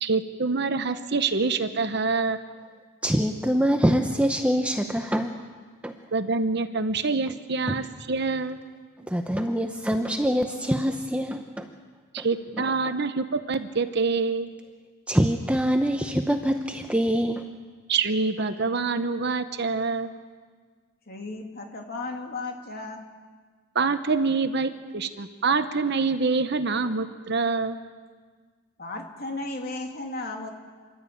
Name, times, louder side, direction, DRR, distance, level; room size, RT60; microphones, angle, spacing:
voice 1, 0.0-2.4 6.1-8.6 12.1-14.5 17.9-20.1 23.7-27.8, right 4 dB, 50° right, 10 dB, 0.9 m, -26 dB
voice 2, 3.0-5.4 5.8-6.0 7.7-7.8 9.1-11.7 12.2-12.3 12.6-12.9 15.1-17.4, equal, 5° right, 5 dB, 0.7 m, -25 dB
voice 3, 21.1-23.0 28.8-30.5, left 2 dB, 45° left, 2 dB, 2.5 m, -35 dB
27.5 x 12.5 x 8.6 m, 1.5 s
head